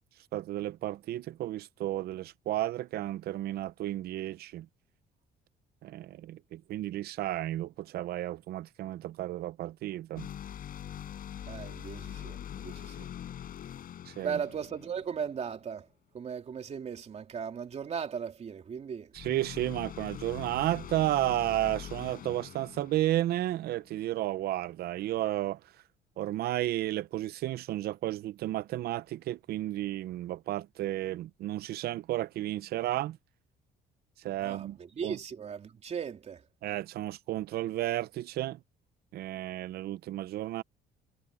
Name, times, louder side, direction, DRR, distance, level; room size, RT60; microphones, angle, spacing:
voice 1, 0.3-4.7 5.8-10.3 14.1-14.4 19.1-25.6 26.2-33.2 34.2-34.8 35.0-35.2 36.6-38.6 39.1-40.6, right 14 dB, 70° right, 0.7 m, -32 dB
sound 1, 10.2-15.6 19.1-23.9, left 10 dB, 55° left, 6.9 m, -43 dB
voice 2, 11.5-13.1 14.2-15.9 16.1-19.1 34.4-36.4, right 7 dB, 40° right, 2.7 m, -37 dB
cardioid pair, 110°, 17 cm